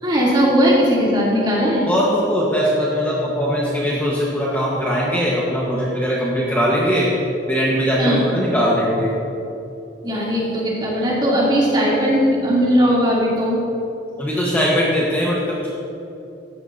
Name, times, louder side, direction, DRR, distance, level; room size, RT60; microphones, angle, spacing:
voice 1, 0.0-1.9 8.0-8.3 10.0-13.6, equal, 25° right, -6 dB, 3.1 m, -18 dB
voice 2, 1.9-7.1 7.5-9.1 14.2-15.7, equal, 10° left, -6 dB, 1.4 m, -20 dB
16.0 x 13.0 x 2.8 m, 2.8 s
head